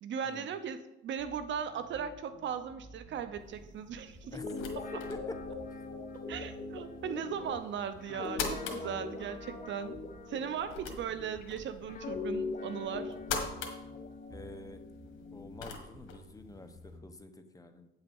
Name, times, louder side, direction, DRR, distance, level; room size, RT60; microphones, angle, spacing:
voice 1, 0.0-4.4 6.3-10.0 10.3-13.1, right 7 dB, 70° right, 11 dB, 0.8 m, -38 dB
sound 1, 1.2-17.1, right 1 dB, 25° right, 1.5 m, -55 dB
sound 2, 3.4-17.0, left 5 dB, 80° left, 1.5 m, -45 dB
Guitar, 4.2-11.4 11.9-15.6, left 3 dB, 45° left, 1.1 m, -41 dB
voice 2, 14.3-14.8 15.3-17.9, left 2 dB, 15° left, 7 dB, 0.9 m, -48 dB
8.7 x 5.7 x 5.4 m, 0.91 s
cardioid pair, 90°, 20 cm